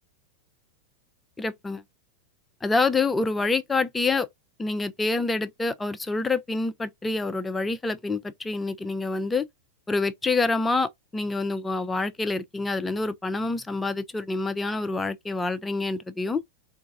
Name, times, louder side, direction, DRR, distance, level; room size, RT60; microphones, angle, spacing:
voice 1, 1.4-1.8 2.6-4.3 4.6-9.4 9.9-16.4, left 3 dB, 10° left, 0.4 m, -27 dB
3.9 x 2.3 x 2.6 m
figure-of-eight pair, 90°, 0 cm